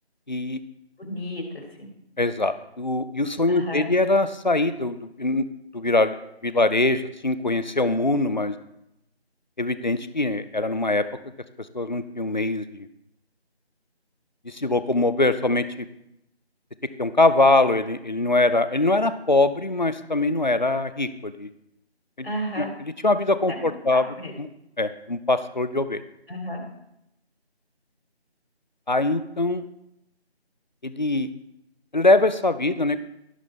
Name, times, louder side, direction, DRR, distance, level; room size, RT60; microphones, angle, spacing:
voice 1, 0.3-0.6 2.2-5.4 5.7-6.1 6.4-8.5 9.6-11.1 11.7-12.9 14.5-15.9 17.0-21.5 22.2-22.3 22.6-24.1 24.4-24.5 24.8-26.0 28.9-29.6 30.8-31.3 31.9-33.0, left 2 dB, 45° left, 13 dB, 0.6 m, -22 dB
voice 2, 1.0-1.9 3.5-3.9 22.2-22.8 23.5-24.3 26.3-26.6, equal, 65° left, 1 dB, 3.2 m, -33 dB
16.0 x 5.6 x 3.3 m, 0.83 s
figure-of-eight pair, 175°, 33 cm